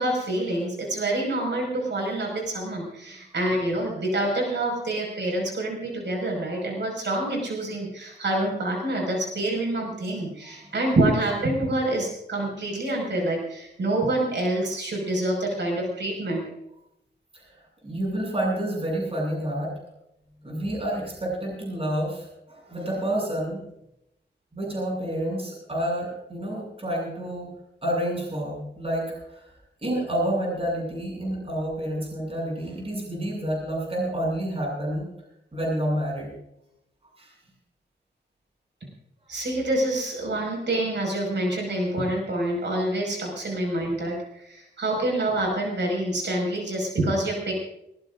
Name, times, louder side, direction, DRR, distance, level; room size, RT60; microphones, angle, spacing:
voice 1, 0.0-16.4 39.3-47.5, right 1 dB, 75° right, -1 dB, 5.7 m, -27 dB
voice 2, 17.3-19.7 20.4-23.6 24.5-27.5 27.8-29.4 29.8-35.1 35.5-36.3 37.2-37.3, right 1 dB, 30° right, -3 dB, 7.7 m, -29 dB
21.0 x 21.0 x 2.6 m, 0.82 s
wide cardioid pair, 120°, 19 cm